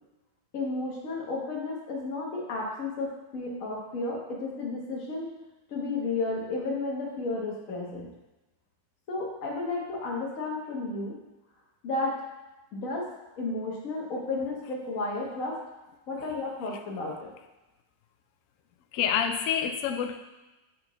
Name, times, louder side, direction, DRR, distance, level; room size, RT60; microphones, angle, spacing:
voice 1, 0.5-5.3 5.7-8.1 9.1-11.2 11.8-12.1 12.7-13.1 13.4-15.6 16.1-17.3, left 3 dB, 55° left, -2 dB, 1.5 m, -32 dB
voice 2, 18.9-20.2, left 8 dB, 70° left, 7 dB, 0.8 m, -27 dB
6.5 x 6.1 x 3.0 m, 1.1 s
omnidirectional pair, 1.8 m